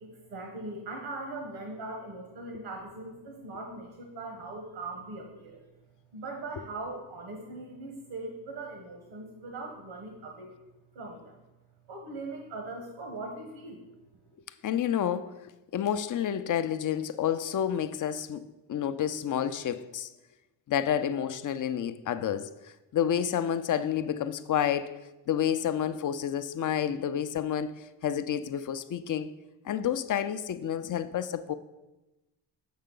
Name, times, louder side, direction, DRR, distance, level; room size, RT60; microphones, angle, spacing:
voice 1, 0.0-5.6 6.1-10.5 10.9-11.4 11.9-13.8, right 2 dB, 75° right, 1.1 m, -40 dB
voice 2, 14.6-15.4 15.7-20.1 20.7-29.3 29.6-31.5, left 9 dB, 45° left, 0.5 m, -30 dB
6.5 x 5.6 x 3.8 m
supercardioid pair, 45°, 45 cm